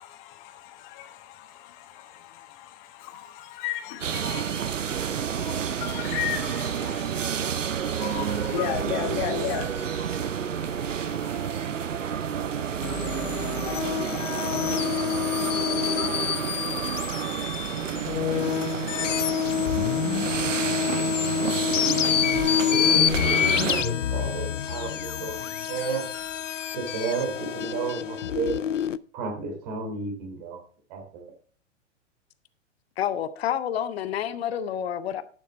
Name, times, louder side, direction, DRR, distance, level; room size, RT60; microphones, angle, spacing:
voice 1, 0.0-16.9, left 11 dB, 40° left, 1.4 m, -37 dB
sound 1, 4.0-23.8, right 8 dB, 85° right, 0.6 m, -30 dB
sound 2, 12.8-29.0, left 9 dB, 80° left, 0.5 m, -27 dB
voice 2, 21.8-25.4 25.7-26.0 26.7-28.5 29.1-30.6 30.9-31.2, right 4 dB, 45° right, 3.1 m, -32 dB
voice 3, 33.0-35.2, left 9 dB, 55° left, 0.8 m, -29 dB
11.5 x 7.1 x 4.1 m
figure-of-eight pair, 105°, 37 cm